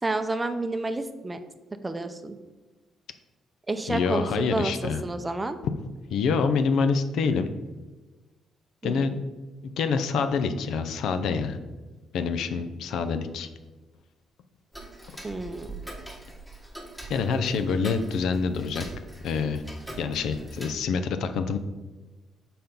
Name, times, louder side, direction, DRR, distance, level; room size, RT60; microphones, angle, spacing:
voice 1, 0.0-1.4 1.8-2.4 3.7-5.6 8.8-9.1 15.2-15.8, right 2 dB, 20° right, 9 dB, 0.6 m, -30 dB
voice 2, 3.9-5.0 6.1-7.5 8.8-9.2 9.8-11.6 12.1-13.5 17.1-18.9 19.2-19.6 20.0-21.6, left 5 dB, 80° left, 9 dB, 0.5 m, -26 dB
Tick-tock, 14.7-20.7, right 1 dB, 5° left, 1.4 m, -43 dB
5.7 x 4.3 x 5.2 m, 1.2 s
cardioid pair, 90°, 0 cm